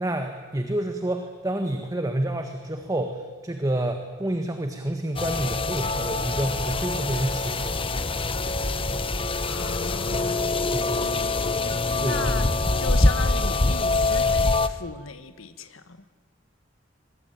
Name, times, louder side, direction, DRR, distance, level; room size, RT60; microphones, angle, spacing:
voice 1, 0.0-7.8 10.7-11.0 12.0-12.3, right 1 dB, 15° right, 5 dB, 1.6 m, -29 dB
sound 1, 5.2-14.7, left 2 dB, 25° left, 1.0 m, -24 dB
voice 2, 9.5-11.1 11.9-16.0, left 4 dB, 85° left, 10 dB, 1.4 m, -37 dB
22.5 x 22.5 x 9.2 m, 1.5 s
head